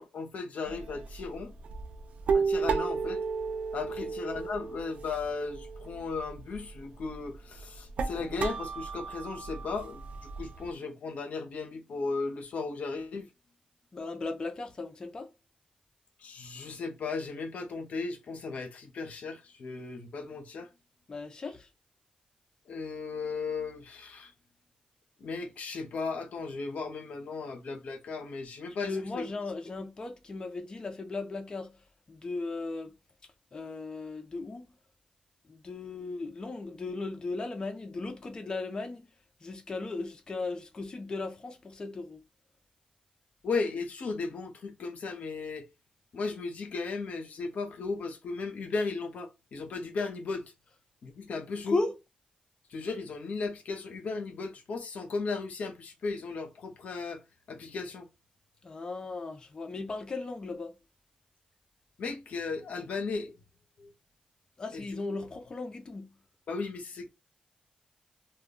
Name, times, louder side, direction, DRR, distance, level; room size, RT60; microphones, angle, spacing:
voice 1, 0.0-1.5 2.3-3.2 3.7-13.3 16.2-20.7 22.7-24.3 25.2-29.3 43.4-45.7 46.1-50.4 51.0-51.8 52.7-57.2 57.5-58.1 62.0-63.3 63.8-63.9 64.7-64.8 66.5-67.1, left 4 dB, 75° left, 0.7 m, -36 dB
sound 1, 0.7-10.7, right 5 dB, 70° right, 0.4 m, -34 dB
voice 2, 13.9-15.3 21.1-21.7 28.8-31.8 32.1-32.9 33.5-34.7 35.5-39.1 39.4-42.2 51.7-52.0 58.6-60.7 64.6-66.1, left 3 dB, 35° left, 0.5 m, -36 dB
2.2 x 2.1 x 3.5 m
wide cardioid pair, 105°, 2 cm